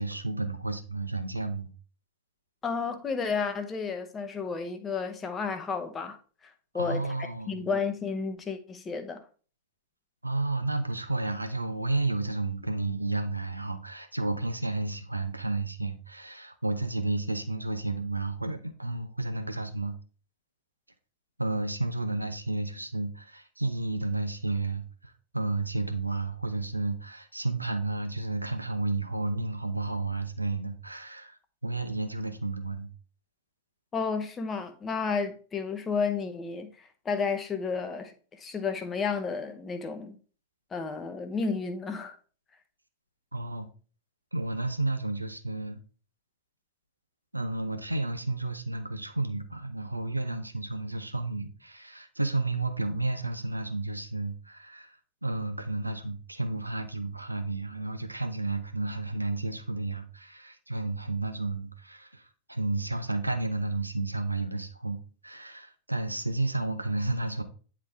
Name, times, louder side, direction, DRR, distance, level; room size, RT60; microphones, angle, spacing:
voice 1, 0.0-1.7 6.7-7.7 10.2-20.0 21.4-32.9 43.3-43.7 44.3-45.8 47.3-67.4, right 2 dB, 85° right, 0.8 m, -32 dB
voice 2, 2.6-6.2 6.4-9.2 33.9-40.2 40.7-42.2, left 5 dB, 20° left, 0.9 m, -32 dB
9.5 x 3.7 x 3.4 m
figure-of-eight pair, 90°, 0 cm